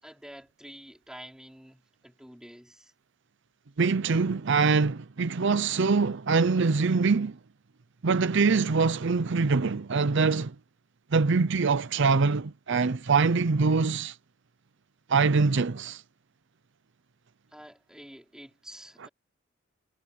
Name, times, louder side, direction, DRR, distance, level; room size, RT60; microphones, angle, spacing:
voice 1, 0.0-2.9 17.5-19.1, equal, 5° right, 4.2 m, -48 dB
voice 2, 3.8-7.4 8.0-10.5 11.1-14.2 15.1-16.0, right 4 dB, 65° right, 0.6 m, -24 dB
head